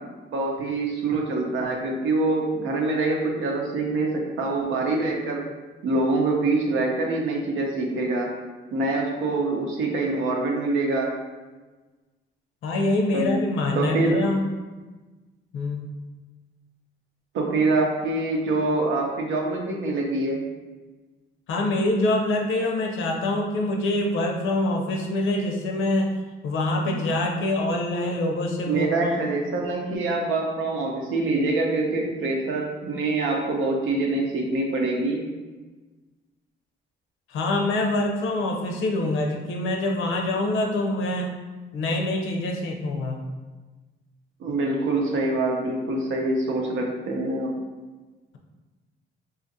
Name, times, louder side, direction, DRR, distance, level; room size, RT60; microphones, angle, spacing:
voice 1, 0.0-5.4 5.8-8.3 8.7-11.1 13.1-13.4 13.7-14.2 17.3-20.4 26.8-27.2 28.7-35.2 44.4-47.5, right 2 dB, 85° right, 0 dB, 0.7 m, -25 dB
voice 2, 12.6-14.4 15.5-15.9 21.5-26.1 26.4-29.2 37.3-41.3 41.7-43.2, left 2 dB, 85° left, 1 dB, 0.6 m, -25 dB
3.8 x 2.4 x 2.6 m, 1.3 s
cardioid pair, 90°, 20 cm